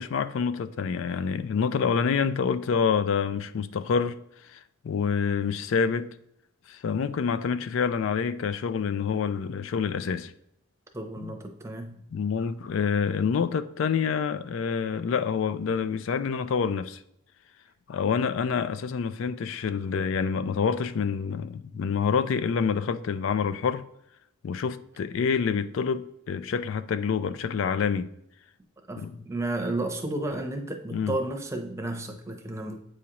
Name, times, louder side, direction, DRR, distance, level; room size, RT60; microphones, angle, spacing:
voice 1, 0.0-6.1 6.7-10.3 11.2-11.3 12.1-17.0 17.9-23.9 24.4-28.1 29.0-29.2 30.9-31.1, left 6 dB, 70° left, 0.3 m, -27 dB
voice 2, 10.9-12.0 28.9-32.8, right 2 dB, 15° right, 0.7 m, -32 dB
8.2 x 4.9 x 2.9 m
head